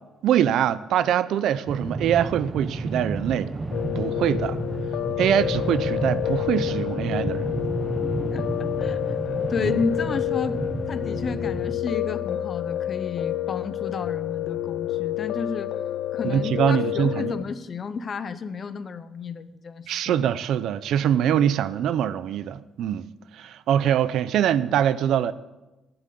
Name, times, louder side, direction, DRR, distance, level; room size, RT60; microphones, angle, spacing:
voice 1, 0.2-3.5 4.0-4.6 5.2-7.5 9.6-9.8 16.2-17.3 19.9-23.1 23.3-25.3, right 10 dB, 70° right, 0.6 m, -23 dB
sound 1, 1.7-11.7, right 2 dB, 20° right, 1.0 m, -31 dB
Piano, 3.7-17.4, left 12 dB, 70° left, 0.6 m, -29 dB
voice 2, 8.3-9.0 9.5-10.6 10.9-15.7 16.1-20.2, left 5 dB, 35° left, 0.7 m, -32 dB
11.0 x 11.0 x 8.5 m
cardioid pair, 145°, 0 cm